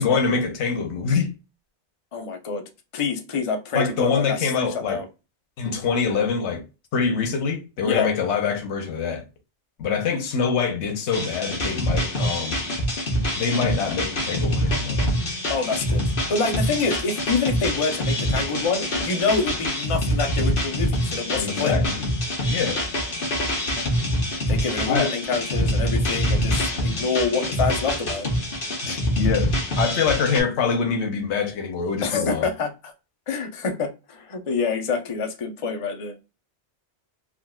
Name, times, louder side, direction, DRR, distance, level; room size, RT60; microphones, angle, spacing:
voice 1, 0.0-1.3 3.7-5.0 5.6-6.6 6.9-9.2 9.8-12.6 13.4-15.0 21.3-22.1 22.5-22.8 24.9-25.1 28.8-32.4, left 5 dB, 90° left, 1.0 m, -24 dB
voice 2, 2.1-2.6 2.9-5.1 7.8-8.1 15.5-21.8 24.5-28.3 32.0-32.9 33.3-36.1, left 4 dB, 40° left, 0.5 m, -27 dB
sound 1, 11.1-30.4, equal, 55° left, 1.1 m, -25 dB
3.6 x 2.4 x 2.2 m
omnidirectional pair, 1.1 m